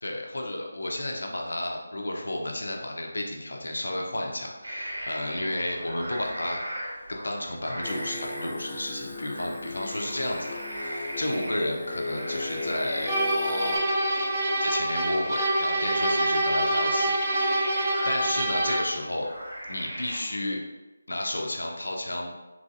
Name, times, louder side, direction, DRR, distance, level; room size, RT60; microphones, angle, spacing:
voice 1, 0.0-6.6 7.2-13.9 14.6-17.1 17.4-17.7 18.0-19.3 19.7-20.6 21.1-22.3, left 1 dB, 80° left, 1 dB, 0.5 m, -32 dB
sound 1, 4.6-20.2, equal, 75° right, 1.2 m, -39 dB
Singing, 7.8-13.8, left 2 dB, 20° left, 0.4 m, -36 dB
sound 2, 13.0-19.0, right 1 dB, 25° right, 0.6 m, -26 dB
3.1 x 2.6 x 2.5 m, 1.1 s
figure-of-eight pair, 165°, 0 cm